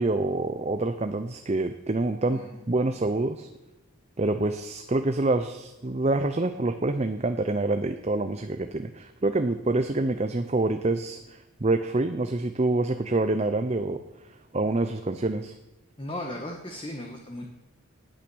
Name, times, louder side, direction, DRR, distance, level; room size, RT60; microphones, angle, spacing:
voice 1, 0.0-3.5 4.2-14.0 14.5-15.5, right 2 dB, 30° right, 8 dB, 0.6 m, -26 dB
voice 2, 2.3-2.6 16.0-17.5, left 1 dB, 25° left, 2 dB, 1.4 m, -36 dB
19.0 x 9.0 x 6.3 m, 1.0 s
head